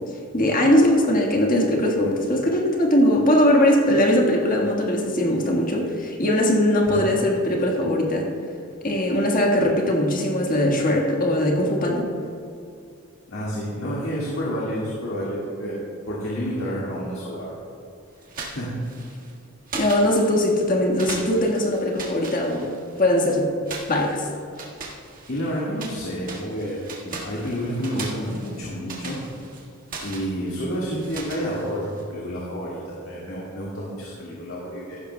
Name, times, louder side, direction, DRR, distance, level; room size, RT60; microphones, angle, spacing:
voice 1, 0.3-8.3 8.8-12.1 19.7-22.7 23.0-23.5 23.9-24.2, left 1 dB, 40° left, 0 dB, 1.5 m, -20 dB
voice 2, 13.3-15.8 16.1-17.6 18.4-18.8 25.3-29.2 30.0-35.0, equal, 60° left, -6 dB, 1.8 m, -29 dB
sound 1, 18.2-19.3 19.7-20.6 21.0-23.1 23.7-26.0 26.2-32.0, right 3 dB, 40° right, 1.6 m, -38 dB
14.5 x 12.0 x 2.2 m, 2.5 s
head